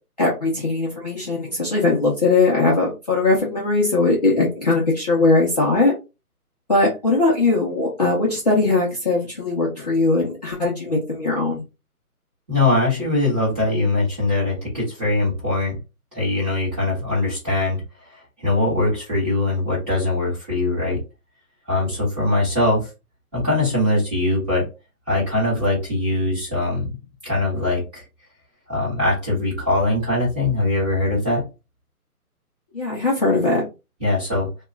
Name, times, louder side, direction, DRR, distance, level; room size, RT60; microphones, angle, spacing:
voice 1, 0.2-6.0 6.7-11.6 32.7-33.6, left 3 dB, 30° left, -5 dB, 0.6 m, -20 dB
voice 2, 12.5-15.8 16.1-17.8 18.4-21.0 21.7-22.9 23.3-24.7 25.1-26.9 27.2-28.0 28.7-31.5 34.0-34.5, left 2 dB, 10° right, -8 dB, 0.9 m, -21 dB
2.9 x 2.3 x 3.2 m, 0.27 s
hypercardioid pair, 160°, 45 cm